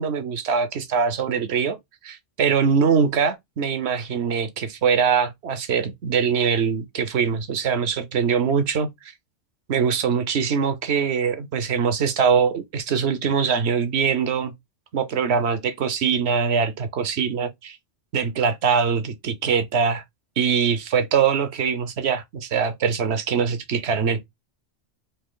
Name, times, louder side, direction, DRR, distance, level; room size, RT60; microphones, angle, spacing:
voice 1, 0.0-1.8 2.0-8.9 9.7-14.5 14.9-17.8 18.1-20.0 20.4-24.3, right 6 dB, 65° right, 1.0 m, -22 dB
4.3 x 2.9 x 3.7 m
omnidirectional pair, 1.2 m